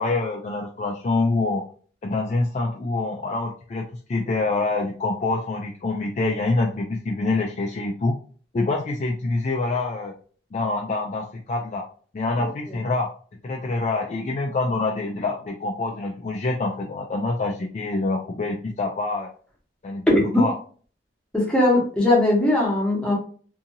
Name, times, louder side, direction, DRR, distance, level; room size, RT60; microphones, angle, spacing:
voice 1, 0.0-1.6 2.0-8.2 8.5-10.1 10.5-11.8 12.1-13.1 13.4-19.3 19.8-20.0 20.4-20.5, left 3 dB, 40° left, 0 dB, 0.3 m, -26 dB
voice 2, 21.3-23.1, left 1 dB, 5° left, -4 dB, 1.0 m, -19 dB
2.7 x 2.6 x 2.6 m, 0.43 s
head